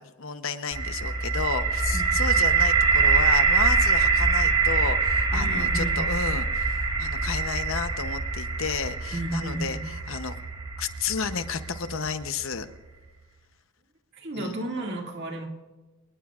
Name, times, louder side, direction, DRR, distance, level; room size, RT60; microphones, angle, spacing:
voice 1, 0.0-10.4 10.8-12.7 14.3-14.6, left 5 dB, 65° left, 10 dB, 0.8 m, -32 dB
sound 1, 0.7-12.5, right 4 dB, 25° right, 1.6 m, -24 dB
voice 2, 1.9-2.3 5.3-6.0 9.1-9.9 14.1-15.5, right 1 dB, 50° right, 1 dB, 2.2 m, -33 dB
27.5 x 19.5 x 2.5 m, 1.2 s
head